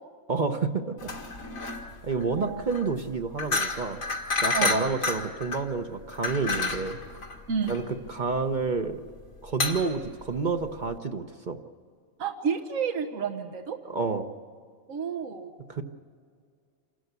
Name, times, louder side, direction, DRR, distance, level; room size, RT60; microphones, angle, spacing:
voice 1, 0.3-1.1 2.0-4.0 4.4-7.0 7.7-7.8 8.1-9.0 9.4-11.6 13.9-14.3 15.7-15.8, right 4 dB, 40° right, 6 dB, 0.9 m, -29 dB
sound 1, 1.0-11.0, left 3 dB, 90° left, 2.3 m, -31 dB
voice 2, 4.5-4.8 7.5-7.9 12.2-13.8 14.9-15.5, right 6 dB, 80° right, 4 dB, 1.6 m, -30 dB
28.0 x 12.5 x 8.2 m, 2.1 s
omnidirectional pair, 1.4 m